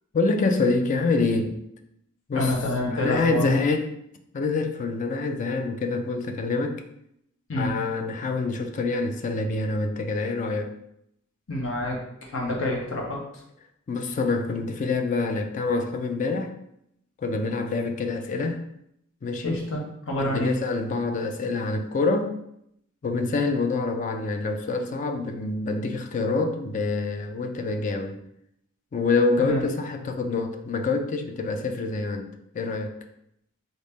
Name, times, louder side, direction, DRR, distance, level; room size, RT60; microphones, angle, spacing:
voice 1, 0.1-1.5 2.3-2.5 2.9-3.9 4.3-6.8 7.5-10.7 13.9-16.5 17.2-18.6 19.2-19.6 20.2-22.3 23.0-28.2 28.9-32.3 32.5-32.9, left 3 dB, 40° left, 6 dB, 0.3 m, -26 dB
voice 2, 2.3-3.5 7.5-7.7 11.5-12.0 12.3-13.2 19.4-19.8 20.1-20.6 29.4-29.6, left 1 dB, 65° left, -1 dB, 0.8 m, -27 dB
3.9 x 2.1 x 3.4 m, 0.76 s
head